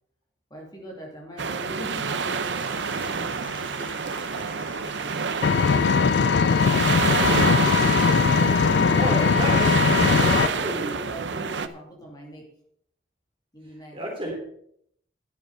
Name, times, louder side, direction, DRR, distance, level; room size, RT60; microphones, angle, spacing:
voice 1, 0.5-2.5 3.0-7.9 8.5-9.1 10.0-12.5 13.5-14.0, right 1 dB, 20° left, -1 dB, 2.7 m, -42 dB
sound 1, 1.4-11.7, right 5 dB, 70° right, 0.7 m, -28 dB
Applause / Crowd, 1.5-9.7, left 3 dB, 45° left, 1.6 m, -47 dB
Engine, 5.4-10.5, left 5 dB, 60° left, 0.3 m, -20 dB
voice 2, 8.9-9.8 10.2-10.9 13.9-14.4, right 1 dB, 25° right, -1 dB, 3.4 m, -31 dB
10.5 x 7.1 x 6.7 m, 0.69 s
head